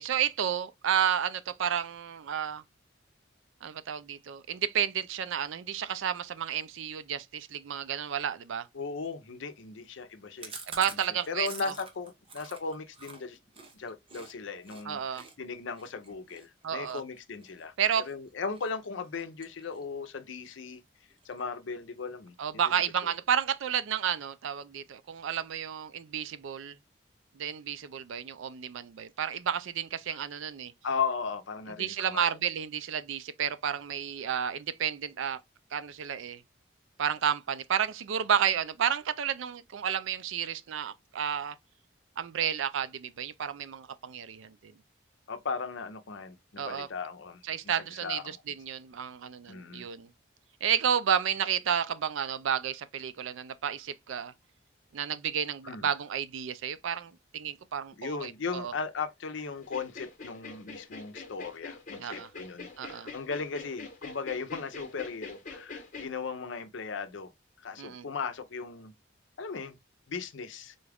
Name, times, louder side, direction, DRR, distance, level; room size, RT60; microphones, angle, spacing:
voice 1, 0.0-2.6 3.6-8.7 10.7-11.5 14.9-15.2 16.6-17.0 17.8-18.0 22.4-26.8 27.4-30.7 31.8-35.4 35.7-36.4 37.0-41.6 42.2-44.7 46.6-46.9 47.4-50.1 50.6-54.3 54.9-58.7 62.0-62.3 62.8-63.1 67.8-68.1, right 8 dB, 80° right, 0.4 m, -31 dB
voice 2, 8.7-10.6 10.9-11.0 11.3-13.4 13.7-20.8 21.2-22.7 23.0-23.1 30.8-32.4 45.3-47.4 48.0-48.4 49.5-49.9 55.6-55.9 58.0-67.3 67.6-68.9 69.4-69.8 70.1-70.8, left 5 dB, 70° left, 0.6 m, -37 dB
Chewing mastication, 10.4-14.3 14.6-14.8 15.1-18.1 18.5-18.9 19.1-20.0 20.3-20.4 20.7-20.8 21.1-21.7, right 4 dB, 25° right, 0.7 m, -46 dB
sound 1, 59.6-66.1, left 4 dB, 40° left, 1.0 m, -44 dB
3.9 x 2.4 x 3.3 m
head